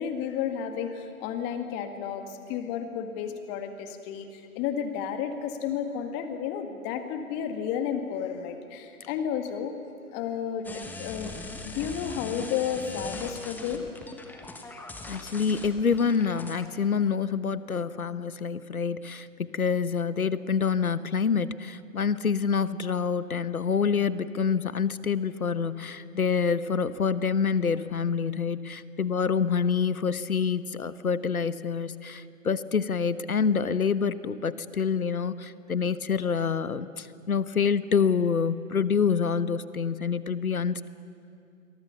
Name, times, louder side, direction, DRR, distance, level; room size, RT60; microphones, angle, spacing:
voice 1, 0.0-9.7 10.1-11.3 11.6-13.9, left 8 dB, 25° left, 7 dB, 1.9 m, -32 dB
sound 1, 10.6-16.7, left 2 dB, 5° left, 1.3 m, -40 dB
voice 2, 15.1-40.9, left 6 dB, 85° left, 15 dB, 1.1 m, -27 dB
28.5 x 23.5 x 7.0 m, 2.4 s
figure-of-eight pair, 130°, 42 cm